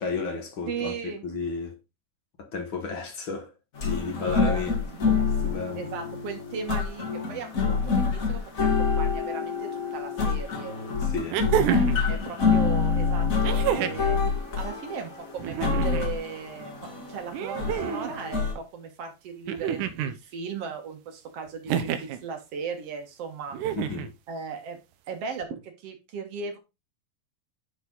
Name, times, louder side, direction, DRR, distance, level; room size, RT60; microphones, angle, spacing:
voice 1, 0.0-1.7 2.4-3.5 3.8-4.8 5.4-5.8 11.0-11.4 23.7-24.1, left 4 dB, 50° left, 1.6 m, -32 dB
voice 2, 0.7-1.2 4.1-5.3 5.8-10.7 11.7-14.2 14.6-23.6 24.3-24.8 25.1-26.6, right 5 dB, 60° right, 1.7 m, -37 dB
sound 1, 3.7-18.5, left 5 dB, 75° left, 0.7 m, -27 dB
sound 2, 10.2-10.3 11.3-12.0 13.4-14.1 15.4-16.1 17.3-18.1 19.5-20.2 21.7-22.2 23.5-24.1 25.4-25.5, right 9 dB, 90° right, 1.8 m, -28 dB
10.5 x 4.9 x 3.9 m
omnidirectional pair, 4.5 m